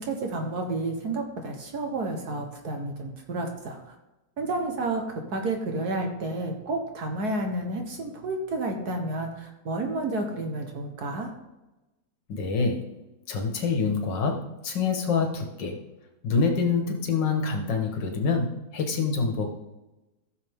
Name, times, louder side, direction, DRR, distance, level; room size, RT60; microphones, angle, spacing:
voice 1, 0.0-3.9 4.4-11.3, right 2 dB, 60° right, 3 dB, 1.7 m, -31 dB
voice 2, 12.3-12.9 13.3-15.8 16.2-19.5, left 4 dB, 90° left, 3 dB, 2.1 m, -26 dB
15.0 x 6.8 x 3.6 m, 1.0 s
omnidirectional pair, 1.9 m